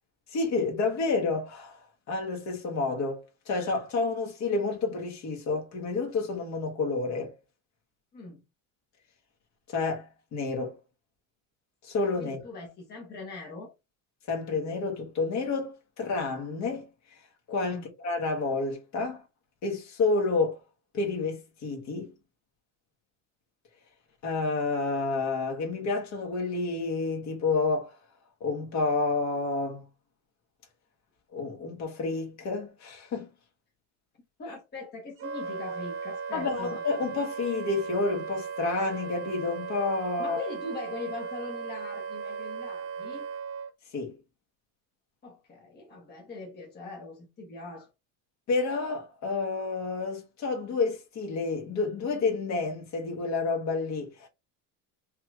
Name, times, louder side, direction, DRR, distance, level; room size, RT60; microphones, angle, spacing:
voice 1, 0.3-7.3 9.7-10.8 11.8-12.4 14.3-16.9 17.5-19.2 19.6-20.6 20.9-22.1 24.2-28.0 28.4-29.8 31.3-33.3 36.3-40.4 43.9-44.2 48.5-54.3, left 3 dB, 45° left, 1.6 m, -29 dB
voice 2, 8.1-8.4 12.2-13.7 17.7-17.9 34.4-36.8 40.2-43.3 45.2-47.9, left 3 dB, 25° left, 1.2 m, -41 dB
Wind instrument woodwind instrument, 35.2-43.7, right 6 dB, 35° right, 0.5 m, -37 dB
5.5 x 3.1 x 2.4 m
cardioid pair, 160°, 40 cm